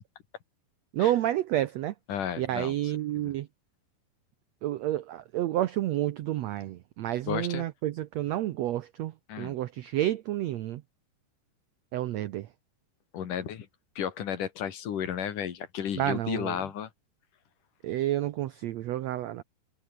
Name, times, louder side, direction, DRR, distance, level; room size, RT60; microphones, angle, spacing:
voice 1, 0.9-1.9 2.4-3.5 4.6-10.8 11.9-12.5 16.0-16.6 17.8-19.4, right 13 dB, 80° right, 1.5 m, -30 dB
voice 2, 2.1-2.7 3.2-3.3 7.3-7.6 9.3-9.6 13.1-13.7 14.0-16.9, left 9 dB, 65° left, 3.5 m, -33 dB
omnidirectional pair, 4.1 m